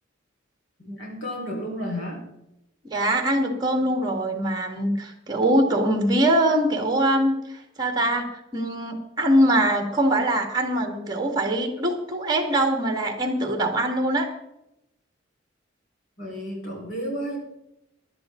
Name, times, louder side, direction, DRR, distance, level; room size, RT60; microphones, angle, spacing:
voice 1, 0.8-2.2 16.2-17.4, equal, 85° left, -1 dB, 4.6 m, -32 dB
voice 2, 2.9-14.3, right 1 dB, 20° right, 4 dB, 2.0 m, -23 dB
18.0 x 11.5 x 3.8 m, 0.86 s
head